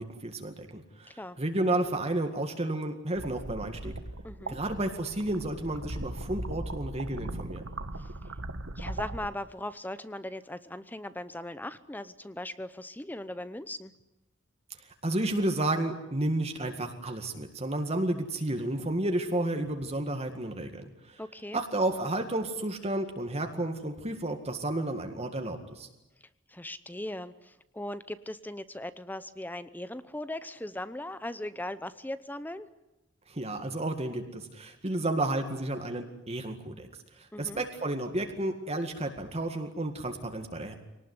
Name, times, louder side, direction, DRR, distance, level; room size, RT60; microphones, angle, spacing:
voice 1, 0.0-3.9 4.5-7.7 14.8-21.2 21.5-25.9 33.3-36.9 37.2-40.8, right 1 dB, 30° right, 5 dB, 2.0 m, -32 dB
voice 2, 1.1-1.4 4.2-4.6 8.0-8.1 8.8-13.9 21.2-21.6 26.2-32.7 37.3-37.6, left 1 dB, 10° left, 14 dB, 0.8 m, -39 dB
sound 1, 3.1-9.3, right 2 dB, 85° right, 1.4 m, -39 dB
24.0 x 19.0 x 9.8 m, 0.96 s
head